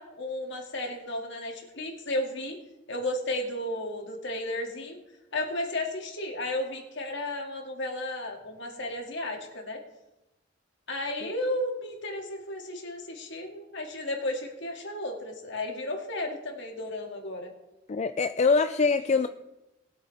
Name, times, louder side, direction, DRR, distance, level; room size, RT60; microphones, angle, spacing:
voice 1, 0.0-2.6 2.9-5.0 5.3-9.8 10.9-17.5 19.1-19.2, left 1 dB, 65° left, 2 dB, 2.2 m, -33 dB
voice 2, 17.9-19.3, left 4 dB, 35° left, 9 dB, 0.4 m, -24 dB
20.0 x 8.3 x 3.4 m, 0.97 s
head